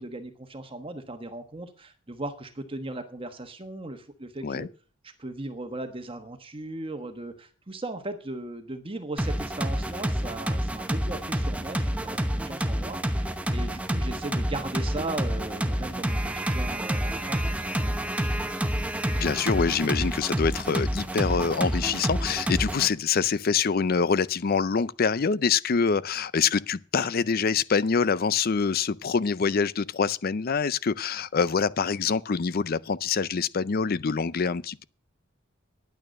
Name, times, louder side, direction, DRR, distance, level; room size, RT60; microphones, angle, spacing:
voice 1, 0.0-4.7 5.0-18.4, right 2 dB, 25° right, 1.2 m, -38 dB
sound 1, 9.2-22.9, right 1 dB, 5° right, 0.9 m, -28 dB
voice 2, 19.2-34.8, left 5 dB, 50° left, 0.5 m, -25 dB
10.5 x 9.2 x 6.4 m
head